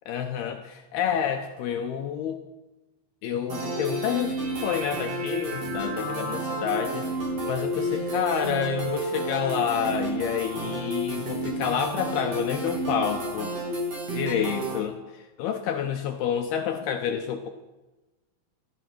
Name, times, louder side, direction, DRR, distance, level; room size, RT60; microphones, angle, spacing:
voice 1, 0.1-2.4 3.2-13.5 14.1-17.5, left 8 dB, 85° left, 5 dB, 2.3 m, -29 dB
sound 1, 3.5-14.8, right 1 dB, 35° right, 3.3 m, -30 dB
15.5 x 14.0 x 6.0 m, 1.1 s
omnidirectional pair, 5.6 m